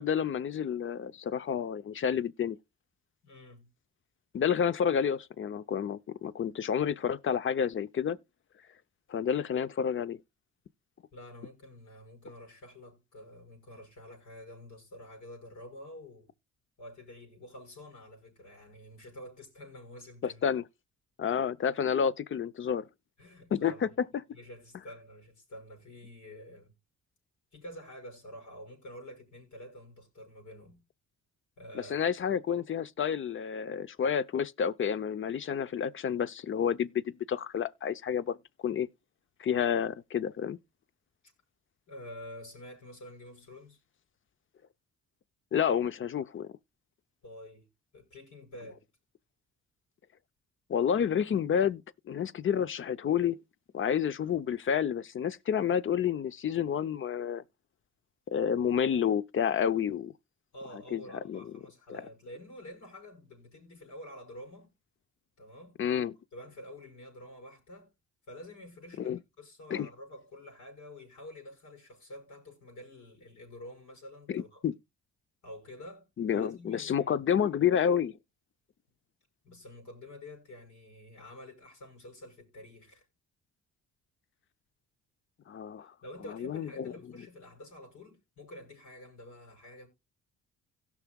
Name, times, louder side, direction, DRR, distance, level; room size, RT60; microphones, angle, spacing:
voice 1, 0.0-2.6 4.3-8.2 9.1-10.2 20.2-20.6 21.2-22.8 23.5-24.1 31.7-38.4 38.6-38.9 39.4-40.6 45.5-46.5 50.7-53.4 53.7-57.4 58.3-60.1 60.9-61.4 61.9-62.0 65.8-66.2 69.0-69.2 69.7-69.9 74.3-74.7 76.2-78.1 85.5-85.9 86.3-86.9, left 8 dB, 40° left, 0.6 m, -29 dB
voice 2, 3.2-3.7 11.1-16.3 16.8-20.4 23.2-24.0 24.3-26.7 27.5-30.8 31.6-32.0 41.9-43.8 47.2-47.7 47.9-48.8 60.5-64.7 65.4-65.8 66.3-67.9 68.3-74.7 75.4-77.3 79.4-83.1 85.8-89.9, left 1 dB, 75° left, 5.7 m, -48 dB
17.0 x 6.0 x 2.3 m
cardioid pair, 90°, 30 cm